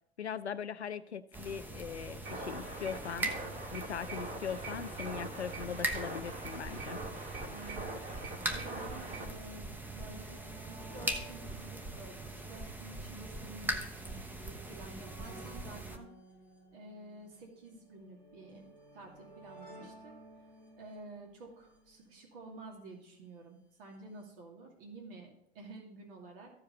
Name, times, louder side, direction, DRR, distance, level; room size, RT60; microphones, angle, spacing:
voice 1, 0.2-3.3 3.7-7.0, left 7 dB, 90° left, 14 dB, 0.6 m, -40 dB
sound 1, 1.3-16.0, right 2 dB, 5° right, 0.7 m, -41 dB
sound 2, 2.2-9.3, right 2 dB, 35° right, 2.7 m, -43 dB
voice 2, 7.5-7.9 8.2-10.4 10.7-16.1 16.7-20.1 20.7-26.5, right 2 dB, 55° right, 0 dB, 2.6 m, -51 dB
sound 3, 7.7-23.0 23.9-24.0 24.2-24.3, right 1 dB, 75° right, 4.3 m, -56 dB
14.0 x 4.8 x 4.2 m, 0.76 s
figure-of-eight pair, 100°, 32 cm